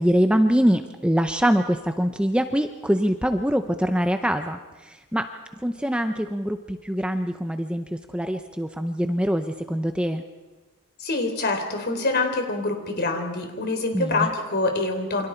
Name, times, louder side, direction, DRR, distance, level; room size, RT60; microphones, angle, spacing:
voice 1, 0.0-5.3 5.6-10.2 13.9-14.3, equal, 5° right, 7 dB, 0.7 m, -24 dB
voice 2, 11.0-15.3, left 2 dB, 50° left, 5 dB, 3.6 m, -25 dB
28.5 x 25.5 x 4.5 m, 1.2 s
head